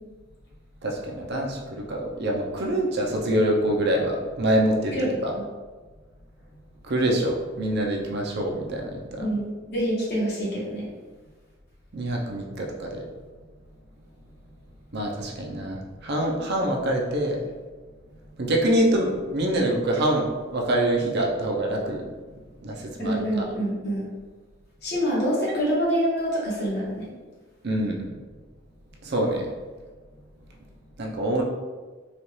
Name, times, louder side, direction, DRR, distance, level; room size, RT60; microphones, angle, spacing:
voice 1, 0.8-5.0 5.2-5.3 6.9-9.3 11.9-13.0 14.9-17.5 18.4-22.0 22.6-23.5 27.6-28.0 29.0-29.5 31.0-31.4, right 1 dB, 60° right, 0 dB, 0.6 m, -25 dB
voice 2, 9.2-10.9 23.0-24.1 24.8-27.1, equal, 60° left, -6 dB, 1.4 m, -26 dB
4.0 x 2.4 x 3.1 m, 1.4 s
head